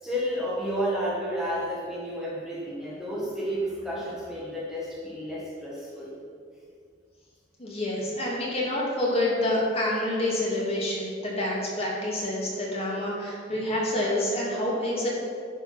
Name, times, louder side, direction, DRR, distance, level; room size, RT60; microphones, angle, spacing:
voice 1, 0.0-6.1, equal, 5° right, -7 dB, 1.6 m, -31 dB
voice 2, 7.6-15.1, left 1 dB, 30° left, -5 dB, 2.5 m, -27 dB
11.0 x 5.3 x 5.9 m, 2.2 s
head